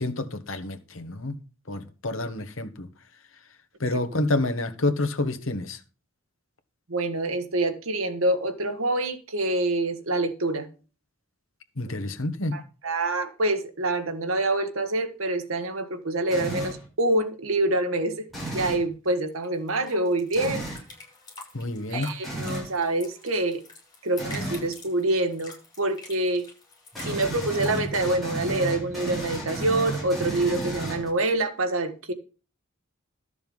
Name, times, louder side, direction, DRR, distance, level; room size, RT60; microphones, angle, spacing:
voice 1, 0.0-1.3 1.7-2.9 3.8-5.8 11.8-12.6 21.5-22.1, left 2 dB, 70° left, 1.5 m, -28 dB
voice 2, 6.9-10.7 12.5-18.3 18.5-20.6 21.9-23.6 24.0-26.5 27.0-32.1, right 2 dB, 80° right, 1.6 m, -26 dB
sound 1, 16.3-16.8 18.3-18.9 20.3-20.8 22.2-22.7 24.2-24.7 26.9-31.3, right 1 dB, ahead, 7.3 m, -33 dB
sound 2, 19.1-28.0, left 3 dB, 20° left, 6.3 m, -46 dB
13.0 x 6.9 x 5.5 m
head